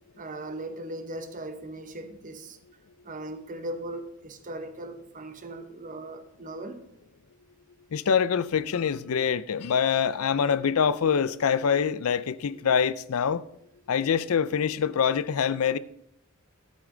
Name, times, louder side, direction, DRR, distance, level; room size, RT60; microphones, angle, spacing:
voice 1, 0.2-2.6 3.0-6.8, right 1 dB, 35° right, 1.0 m, -38 dB
voice 2, 7.9-13.4 13.9-15.8, left 7 dB, 70° left, 0.5 m, -25 dB
12.5 x 8.2 x 3.9 m
head